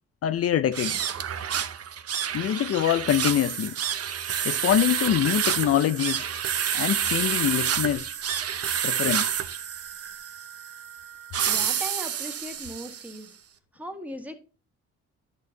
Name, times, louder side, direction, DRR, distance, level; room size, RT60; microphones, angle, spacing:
voice 1, 0.2-1.0 2.3-3.7 4.4-6.3 6.7-8.1 8.8-9.3, left 10 dB, 50° left, 0.5 m, -24 dB
sound 1, 0.7-13.2, right 9 dB, 55° right, 0.9 m, -29 dB
voice 2, 11.4-13.3 13.7-14.4, equal, 5° right, 1.6 m, -38 dB
10.0 x 6.7 x 2.7 m
cardioid pair, 90°, 30 cm